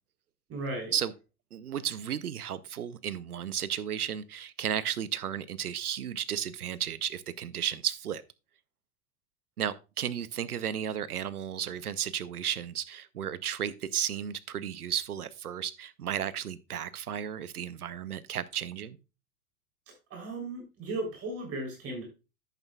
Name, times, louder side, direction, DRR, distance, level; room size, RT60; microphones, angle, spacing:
voice 1, 0.5-0.9 20.1-22.0, right 2 dB, 30° right, 3.4 m, -36 dB
voice 2, 1.5-8.2 9.6-19.0, right 9 dB, 80° right, 0.8 m, -34 dB
10.5 x 8.3 x 2.3 m
figure-of-eight pair, 95°, 44 cm